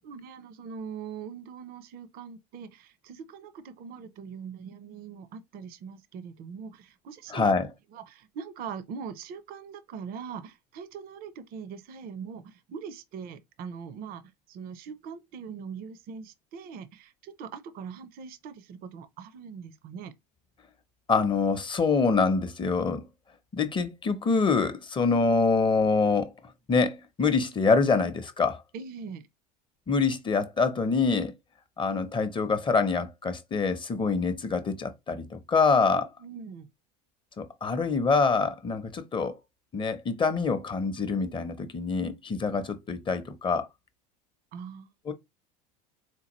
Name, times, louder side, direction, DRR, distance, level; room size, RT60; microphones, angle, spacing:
voice 1, 0.0-7.6 7.9-20.1 28.7-29.3 35.9-36.7 44.5-44.9, right 6 dB, 45° right, 0.6 m, -42 dB
voice 2, 7.3-7.7 21.1-23.1 23.5-26.3 26.7-28.6 29.9-31.3 31.8-36.1 37.4-39.3 39.7-43.7 45.0-45.1, left 4 dB, 25° left, 0.7 m, -25 dB
4.4 x 2.3 x 3.0 m
hypercardioid pair, 90°, 20 cm